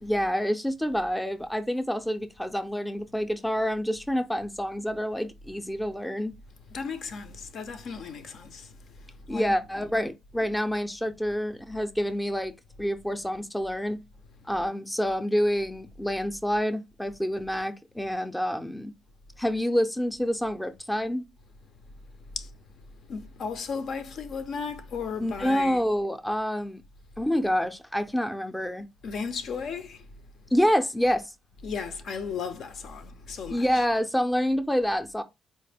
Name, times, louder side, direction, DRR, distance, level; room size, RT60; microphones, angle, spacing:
voice 1, 0.0-6.3 9.3-12.5 12.8-14.0 14.5-18.9 19.4-21.3 25.2-26.8 27.2-28.9 30.5-31.3 33.5-35.2, equal, 5° left, 0.5 m, -27 dB
voice 2, 6.7-9.9 22.4-22.5 23.1-25.8 29.0-30.1 31.6-33.8, left 5 dB, 65° left, 0.6 m, -35 dB
4.1 x 2.1 x 3.4 m
cardioid pair, 90°, 0 cm